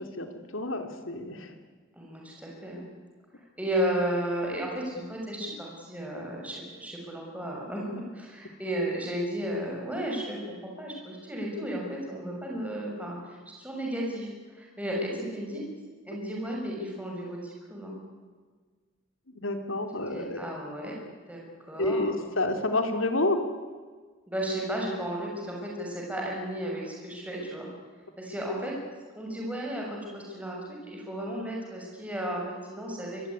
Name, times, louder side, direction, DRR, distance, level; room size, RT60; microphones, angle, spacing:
voice 1, 0.0-1.5 19.3-20.5 21.8-23.4, left 2 dB, 70° left, 6 dB, 3.2 m, -29 dB
voice 2, 2.0-2.9 3.6-15.6 16.0-18.0 20.1-20.9 21.3-21.4 21.7-22.1 24.3-27.7 28.2-28.7 29.1-33.2, right 1 dB, 5° right, -2 dB, 6.5 m, -34 dB
25.0 x 21.5 x 9.9 m, 1.5 s
head